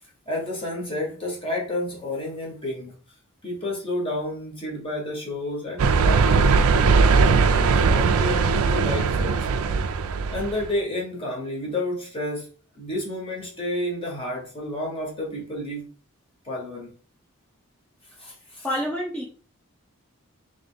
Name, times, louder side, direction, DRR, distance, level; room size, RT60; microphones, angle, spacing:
voice 1, 0.2-3.0 3.4-6.3 7.2-9.5 10.3-15.9 16.4-16.9 18.2-18.7, left 1 dB, 25° left, -3 dB, 1.6 m, -30 dB
sound 1, 5.8-10.7, right 4 dB, 75° right, 0.4 m, -19 dB
voice 2, 18.6-19.2, equal, 5° left, -5 dB, 0.7 m, -27 dB
3.5 x 3.3 x 3.9 m, 0.41 s
head